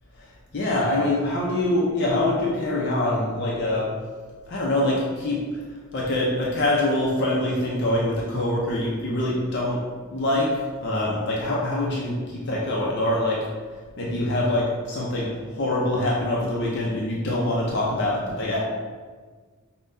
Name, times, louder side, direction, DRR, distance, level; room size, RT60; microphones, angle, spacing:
voice 1, 0.5-3.9 4.5-5.4 5.9-9.8 10.1-13.5 14.0-18.6, left 1 dB, 55° left, -4 dB, 0.5 m, -24 dB
5.3 x 2.2 x 2.6 m, 1.5 s
head